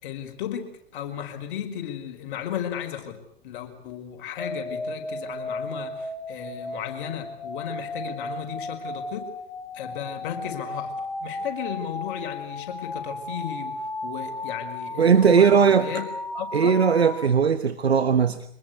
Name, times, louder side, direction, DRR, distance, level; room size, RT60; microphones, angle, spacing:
voice 1, 0.0-9.3 9.7-16.8, left 10 dB, 55° left, 6 dB, 5.3 m, -35 dB
sound 1, 4.4-17.3, left 1 dB, 5° left, 3.0 m, -35 dB
voice 2, 15.0-16.0 16.5-18.4, right 6 dB, 85° right, 12 dB, 1.2 m, -19 dB
25.5 x 20.5 x 8.3 m, 0.68 s
figure-of-eight pair, 100°, 31 cm